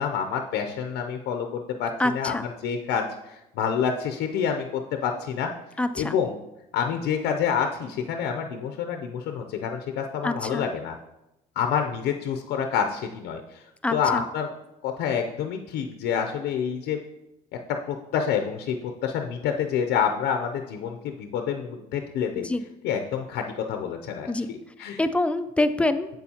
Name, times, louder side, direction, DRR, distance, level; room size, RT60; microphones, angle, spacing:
voice 1, 0.0-5.5 6.0-6.4 6.7-10.9 11.6-13.6 13.9-14.5 14.8-17.0 17.9-18.8 19.0-22.5 22.8-25.0, left 7 dB, 85° left, 5 dB, 0.6 m, -28 dB
voice 2, 2.0-2.5 5.8-6.2 10.2-10.6 13.8-14.2 22.3-22.6 24.3-24.5 25.0-26.1, left 2 dB, 5° left, 10 dB, 0.4 m, -25 dB
7.7 x 7.0 x 2.8 m, 0.93 s
cardioid pair, 110°, 17 cm